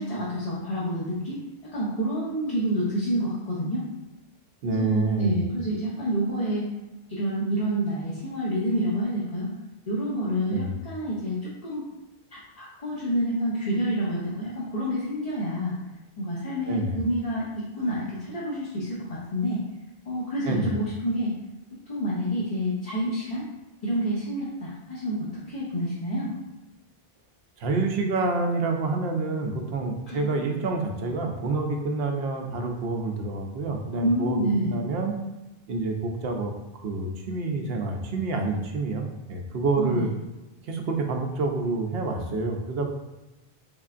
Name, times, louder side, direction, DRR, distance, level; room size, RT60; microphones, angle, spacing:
voice 1, 0.0-1.4 1.7-3.8 4.7-6.7 7.1-9.5 9.9-11.9 12.3-15.7 16.2-19.6 20.0-21.3 21.9-23.5 23.8-26.3 30.1-30.2 34.0-34.7 39.8-40.0, equal, 40° left, -7 dB, 0.7 m, -28 dB
voice 2, 4.6-5.4 10.5-10.7 16.7-17.0 20.4-20.7 27.6-35.2 35.7-40.1 40.6-42.9, right 3 dB, 75° right, 3 dB, 0.8 m, -28 dB
3.6 x 3.3 x 2.4 m, 1.0 s
omnidirectional pair, 1.0 m